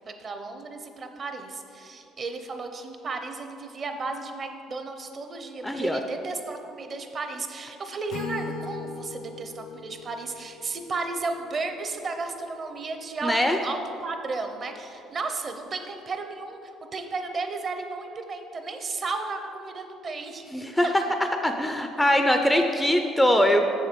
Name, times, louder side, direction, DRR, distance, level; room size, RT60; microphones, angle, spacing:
voice 1, 0.1-20.5 20.8-20.9, right 3 dB, 35° right, 6 dB, 0.7 m, -34 dB
voice 2, 5.6-6.0 13.2-13.6 20.5-20.9 21.4-23.6, left 1 dB, 5° left, 5 dB, 0.4 m, -22 dB
Acoustic guitar / Strum, 8.1-12.1, left 4 dB, 70° left, 0.5 m, -39 dB
7.2 x 6.9 x 5.1 m, 2.8 s
cardioid pair, 145°, 0 cm